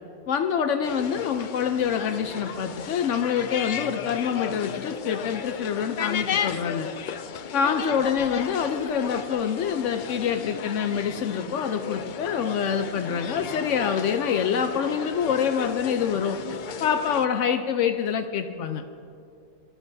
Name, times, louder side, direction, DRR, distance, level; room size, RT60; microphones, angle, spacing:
voice 1, 0.3-6.9 7.5-18.8, left 7 dB, 80° left, 7 dB, 1.0 m, -26 dB
sound 1, 0.8-17.3, left 7 dB, 60° left, 0.5 m, -34 dB
23.5 x 13.5 x 2.7 m, 2.6 s
omnidirectional pair, 1.2 m